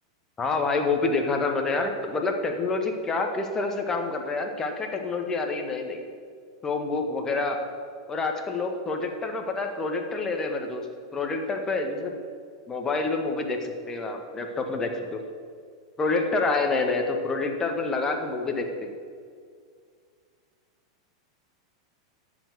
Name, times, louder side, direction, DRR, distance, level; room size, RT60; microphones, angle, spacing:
voice 1, 0.4-6.0 6.6-7.6 8.1-10.8 11.1-12.2 12.7-15.2 16.0-18.9, left 3 dB, 20° left, 4 dB, 1.6 m, -27 dB
10.0 x 7.4 x 6.3 m, 2.1 s
hypercardioid pair, 110°, 2 cm